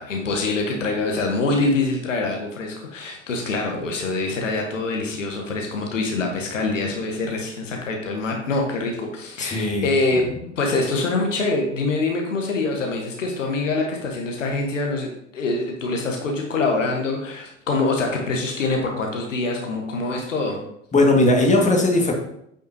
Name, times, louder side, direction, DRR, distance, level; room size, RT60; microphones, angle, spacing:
voice 1, 0.0-20.6, left 3 dB, 75° left, 1 dB, 1.3 m, -25 dB
voice 2, 9.4-9.9 20.9-22.1, left 2 dB, 20° left, 0 dB, 1.8 m, -18 dB
8.2 x 6.4 x 2.8 m, 0.75 s
figure-of-eight pair, 70°, 38 cm